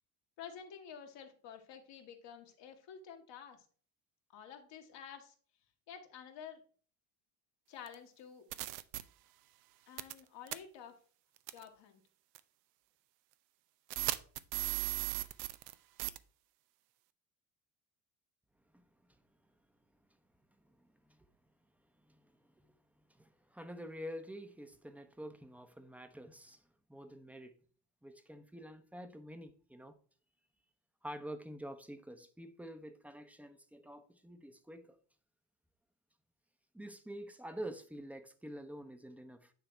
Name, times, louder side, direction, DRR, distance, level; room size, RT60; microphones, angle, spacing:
voice 1, 0.4-3.7 4.3-5.3 5.9-6.6 7.7-8.5 9.9-11.0 11.5-12.0, left 8 dB, 60° left, 1.5 m, -50 dB
sound 1, 7.9-8.0 8.5-9.0 10.0-10.2 10.5-10.6 11.5-11.6 12.4-12.5 13.9-15.7 16.0-16.2, right 17 dB, 80° right, 0.6 m, -36 dB
voice 2, 18.7-19.1 20.6-21.3 22.1-22.7 23.2-26.6 26.9-27.5 28.0-30.0 31.0-35.0 36.7-39.5, equal, 5° right, 0.8 m, -48 dB
9.2 x 3.4 x 4.3 m
hypercardioid pair, 65°, 48 cm